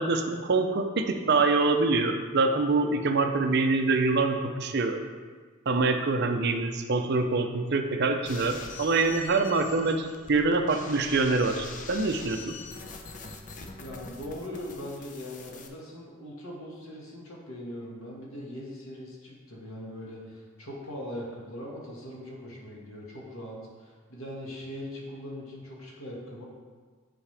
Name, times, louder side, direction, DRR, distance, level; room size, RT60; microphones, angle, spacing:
voice 1, 0.0-5.0 5.7-12.6, right 3 dB, 50° right, 5 dB, 0.6 m, -25 dB
sound 1, 8.3-15.7, left 4 dB, 35° left, 0.6 m, -44 dB
voice 2, 13.8-26.4, left 1 dB, 75° left, -4 dB, 1.9 m, -40 dB
10.0 x 4.8 x 3.4 m, 1.5 s
head